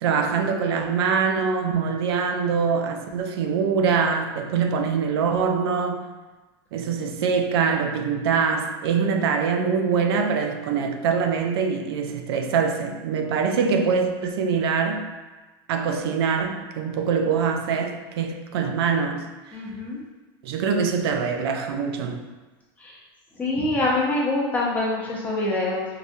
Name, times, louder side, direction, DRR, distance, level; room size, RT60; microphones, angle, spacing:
voice 1, 0.0-6.1 6.7-15.1 15.7-19.3 20.4-22.2, right 6 dB, 85° right, 0.4 m, -24 dB
voice 2, 19.5-20.0 22.8-23.0 23.4-25.8, left 2 dB, 10° left, 0.6 m, -25 dB
4.8 x 2.2 x 2.6 m
supercardioid pair, 160°, 13 cm